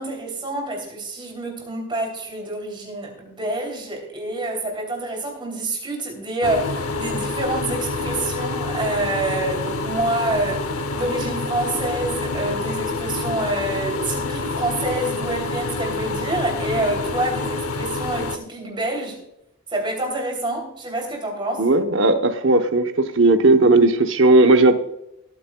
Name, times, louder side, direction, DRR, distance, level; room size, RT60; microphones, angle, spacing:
voice 1, 0.0-19.2 19.7-21.7, right 2 dB, 25° right, 1 dB, 3.1 m, -27 dB
sound 1, 6.4-18.4, left 3 dB, 85° left, 0.9 m, -27 dB
voice 2, 21.6-24.7, right 2 dB, 60° right, 6 dB, 0.9 m, -16 dB
19.0 x 9.1 x 2.3 m, 0.82 s
head